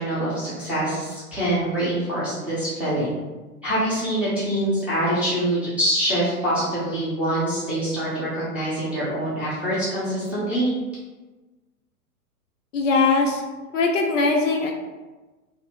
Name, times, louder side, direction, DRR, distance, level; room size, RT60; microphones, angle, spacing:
voice 1, 0.0-3.2 3.6-10.7, right 1 dB, 5° right, -13 dB, 0.5 m, -25 dB
voice 2, 12.7-13.4 13.7-14.7, left 3 dB, 55° left, 1 dB, 0.5 m, -20 dB
2.6 x 2.0 x 3.4 m, 1.2 s
figure-of-eight pair, 110°, 47 cm